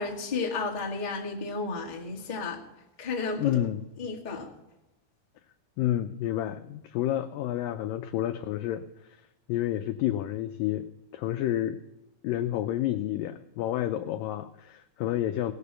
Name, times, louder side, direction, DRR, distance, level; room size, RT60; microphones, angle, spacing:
voice 1, 0.0-2.6 3.0-3.6 4.0-4.5, left 4 dB, 20° left, -2 dB, 1.2 m, -32 dB
voice 2, 3.4-3.8 5.8-9.2 9.5-10.9 11.1-11.8 12.2-15.5, left 13 dB, 80° left, 8 dB, 2.0 m, -30 dB
19.5 x 6.8 x 6.8 m, 0.94 s
omnidirectional pair, 4.6 m